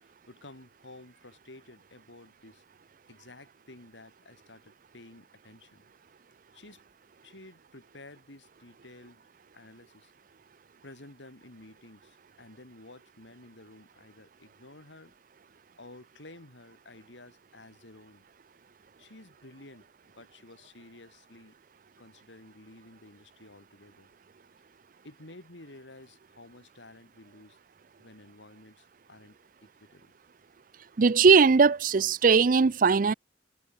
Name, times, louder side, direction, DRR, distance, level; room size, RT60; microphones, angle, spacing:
voice 1, 0.0-2.6 3.1-5.8 6.5-6.8 7.2-9.2 9.5-10.1 10.8-15.1 15.8-18.2 19.0-21.5 22.0-24.1 25.0-27.6 28.0-30.1, left 2 dB, 85° left, 3.2 m, -52 dB
voice 2, 31.0-33.1, right 5 dB, 50° right, 0.5 m, -20 dB
head